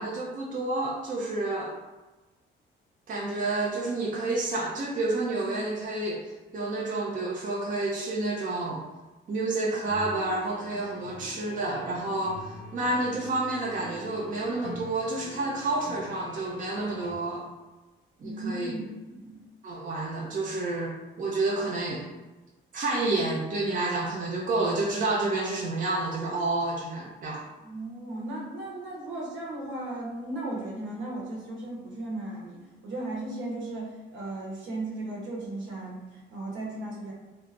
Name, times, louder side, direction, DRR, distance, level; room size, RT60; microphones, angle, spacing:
voice 1, 0.0-1.7 3.1-8.8 9.3-17.4 18.2-18.7 19.6-20.9 21.2-22.0 22.7-27.4, right 2 dB, 40° right, -3 dB, 0.5 m, -29 dB
sound 1, 9.9-17.2, left 2 dB, 60° left, 0.5 m, -45 dB
voice 2, 18.2-19.4 27.6-37.1, right 2 dB, 75° right, -3 dB, 0.9 m, -36 dB
3.2 x 2.0 x 2.4 m, 1.2 s
cardioid pair, 90°, 20 cm